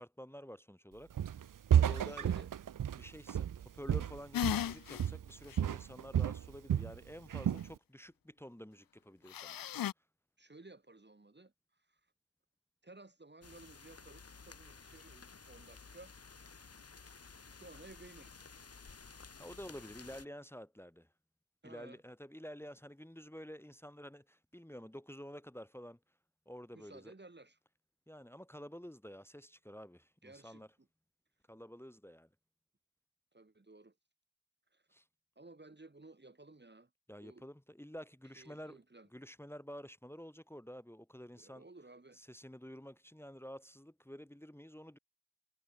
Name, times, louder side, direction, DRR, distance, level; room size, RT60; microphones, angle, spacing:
voice 1, 0.0-2.3 3.0-9.6 19.4-21.1 21.6-26.0 26.5-27.1 28.1-30.7 31.5-32.3 34.9-35.0 37.1-38.8 39.1-41.6 42.1-45.0, equal, 5° left, 2.5 m, -50 dB
Walk footsteps, 1.2-1.4 1.7-4.7 5.0-5.3 5.6-7.0 7.3-7.7, right 9 dB, 55° right, 0.7 m, -31 dB
voice 2, 1.9-2.5 10.4-12.0 12.8-16.1 17.5-18.5 21.6-22.0 26.7-27.6 30.2-30.6 33.3-33.9 34.7-34.8 35.4-36.9 37.2-37.5 38.4-39.1 41.3-42.2, right 2 dB, 25° right, 2.7 m, -56 dB
sound 1, 4.3-5.1 5.5-5.6 9.3-9.9, left 11 dB, 60° left, 0.6 m, -35 dB
sound 2, 13.4-20.3, left 4 dB, 40° left, 1.5 m, -54 dB
cardioid pair, 45°, 38 cm